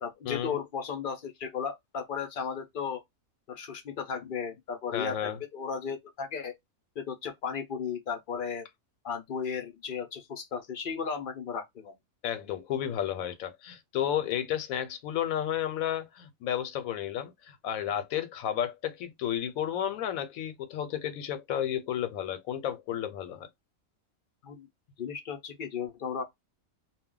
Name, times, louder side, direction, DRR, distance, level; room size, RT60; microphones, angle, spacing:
voice 1, 0.0-3.0 3.5-6.5 7.0-8.7 9.0-11.9 24.4-24.7 25.0-26.2, left 6 dB, 55° left, 0.6 m, -35 dB
voice 2, 4.9-5.4 12.2-23.5, left 10 dB, 80° left, 1.0 m, -32 dB
2.3 x 2.1 x 3.6 m
omnidirectional pair, 1.4 m